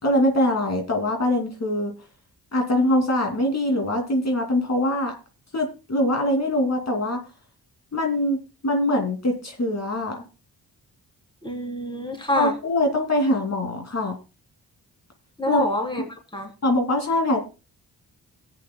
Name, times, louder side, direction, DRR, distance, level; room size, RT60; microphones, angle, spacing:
voice 1, 0.0-1.9 2.5-5.1 5.5-7.2 7.9-10.2 12.3-14.2 15.5-15.6 16.6-17.4, left 1 dB, 45° left, 3 dB, 2.6 m, -23 dB
voice 2, 11.4-12.5 15.4-16.5, left 1 dB, 15° left, 3 dB, 3.3 m, -27 dB
21.0 x 8.6 x 2.2 m, 0.30 s
cardioid pair, 90°, 37 cm